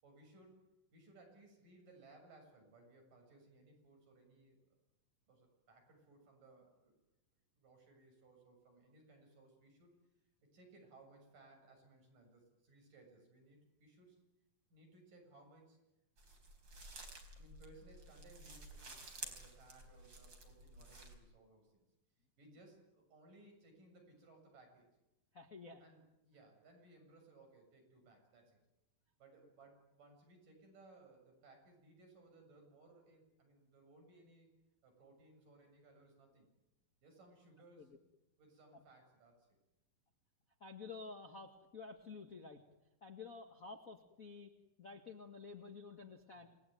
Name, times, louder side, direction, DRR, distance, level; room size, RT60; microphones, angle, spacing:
voice 1, 0.0-4.6 5.3-6.9 7.6-9.9 10.5-14.2 14.7-15.8 17.4-21.8 22.4-24.9 25.8-28.6 29.2-34.5 34.8-36.5 37.0-37.9 38.4-39.5 46.3-46.5, right 2 dB, 60° right, 3 dB, 8.6 m, -63 dB
sound 1, 16.2-21.2, right 2 dB, 30° right, 4.6 m, -52 dB
voice 2, 25.3-25.8 37.8-38.0 38.7-38.8 40.6-42.6 43.0-44.5 44.8-46.5, left 4 dB, 35° left, 3 dB, 1.5 m, -51 dB
28.5 x 20.5 x 9.4 m, 0.92 s
omnidirectional pair, 4.2 m